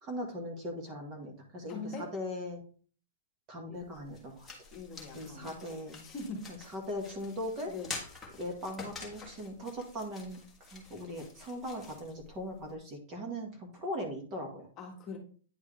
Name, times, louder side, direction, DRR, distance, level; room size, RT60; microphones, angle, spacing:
voice 1, 0.0-2.6 3.5-4.5 5.1-6.0 6.7-7.7 8.4-14.7, left 1 dB, 25° right, 2 dB, 1.7 m, -39 dB
voice 2, 1.7-2.1 3.7-3.8 4.7-5.5 6.0-6.5 7.6-7.9 14.8-15.2, left 3 dB, 20° left, 0 dB, 1.5 m, -42 dB
sound 1, 3.8-12.8, left 4 dB, 5° left, 1.5 m, -48 dB
9.5 x 4.7 x 3.3 m, 0.41 s
hypercardioid pair, 165°, 0 cm